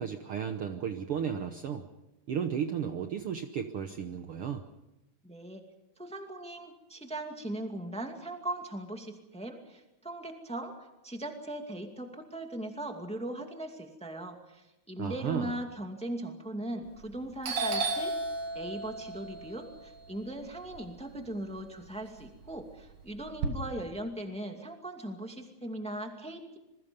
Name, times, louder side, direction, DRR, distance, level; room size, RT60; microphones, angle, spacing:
voice 1, 0.0-1.9 2.3-4.6 15.0-15.6, right 8 dB, 60° right, 6 dB, 1.6 m, -34 dB
voice 2, 5.2-5.6 6.0-18.1 18.5-26.6, right 1 dB, ahead, 4 dB, 1.8 m, -39 dB
Doorbell, 16.9-17.2 17.4-21.6 22.0-23.5, right 3 dB, 85° right, 3.5 m, -35 dB
27.0 x 22.0 x 5.3 m, 0.97 s
omnidirectional pair, 3.4 m